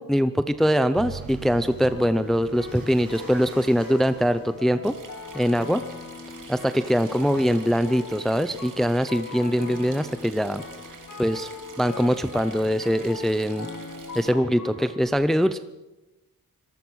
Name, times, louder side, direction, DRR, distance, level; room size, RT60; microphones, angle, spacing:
voice 1, 0.0-4.9 5.3-5.8 6.5-10.6 11.2-11.5 11.8-13.7 14.1-15.6, equal, ahead, 12 dB, 0.6 m, -23 dB
sound 1, 0.9-8.7, right 5 dB, 80° right, 6.4 m, -44 dB
sound 2, 1.8-15.1, left 4 dB, 65° left, 4.7 m, -40 dB
sound 3, 4.8-14.3, right 5 dB, 65° right, 3.1 m, -47 dB
26.0 x 19.0 x 6.3 m, 1.0 s
wide cardioid pair, 155°, 34 cm